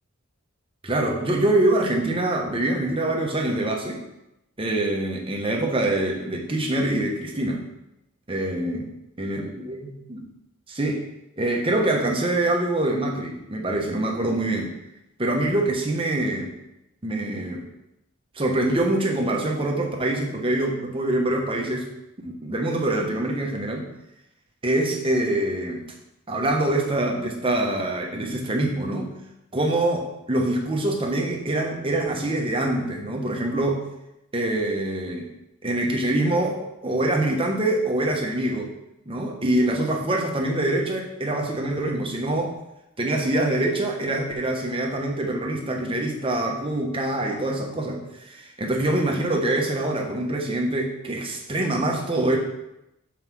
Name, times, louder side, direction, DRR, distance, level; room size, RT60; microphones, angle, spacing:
voice 1, 0.8-4.0 4.6-7.6 8.3-8.9 9.2-10.2 10.7-11.0 11.4-14.7 15.2-16.5 17.0-17.6 18.3-21.9 22.2-23.9 24.6-25.8 26.3-29.1 29.5-33.9 34.3-35.3 35.6-38.7 39.1-42.5 43.0-52.4, right 1 dB, 25° right, 0 dB, 1.0 m, -25 dB
5.5 x 4.8 x 6.1 m, 0.88 s
head